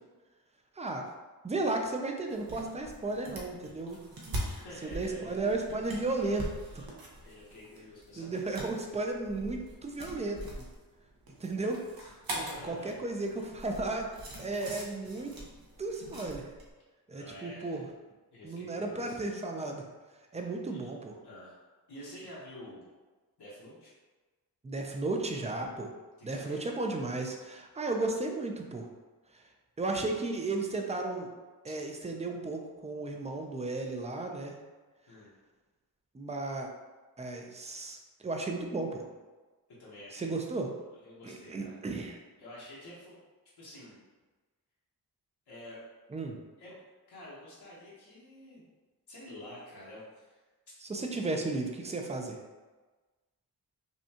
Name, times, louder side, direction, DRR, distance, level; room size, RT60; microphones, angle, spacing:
voice 1, 0.8-1.1 1.4-4.0 4.8-6.5 6.8-6.9 8.2-10.5 11.4-11.8 12.6-14.1 14.4-15.3 15.8-16.5 17.1-17.9 18.4-19.9 20.3-21.1 24.6-25.9 26.2-28.9 29.3-29.4 29.8-31.3 31.6-34.6 36.1-36.7 37.2-38.0 38.2-39.1 40.1-40.7 41.2-42.2 46.1-46.4 50.8-52.4, right 2 dB, 20° right, 2 dB, 0.4 m, -34 dB
sound 1, 2.3-16.7, right 1 dB, 65° right, 0.9 m, -43 dB
voice 2, 4.4-5.3 5.9-6.4 6.7-6.9 7.2-8.7 12.0-13.2 17.1-17.9 18.3-19.4 20.7-20.9 21.2-21.5 21.9-22.8 23.4-23.9 26.2-26.7 31.6-31.7 35.1-35.3 39.8-41.8 42.4-43.2 43.6-44.0 45.5-45.8 46.6-46.8 47.1-48.6 49.1-50.4 51.2-51.5, left 1 dB, 85° left, -8 dB, 1.2 m, -49 dB
5.3 x 2.3 x 2.8 m, 1.3 s
wide cardioid pair, 115°, 38 cm